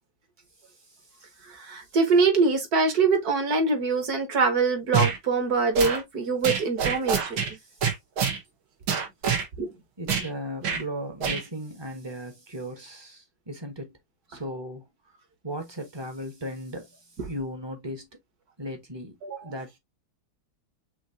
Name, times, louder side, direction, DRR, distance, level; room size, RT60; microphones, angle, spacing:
voice 1, 1.4-7.6 9.6-9.7 19.2-19.4, right 4 dB, 55° right, 1.7 m, -24 dB
sound 1, 4.9-5.2 5.7-6.0 6.4-7.5 7.8-8.4 8.9-9.5 10.1-10.3 10.6-10.8 11.2-11.4, right 6 dB, 85° right, 2.1 m, -25 dB
voice 2, 10.0-14.0 14.3-14.9 15.4-18.1 18.6-19.2 19.4-19.8, equal, 20° right, 0.8 m, -36 dB
6.4 x 2.9 x 2.7 m
omnidirectional pair, 2.1 m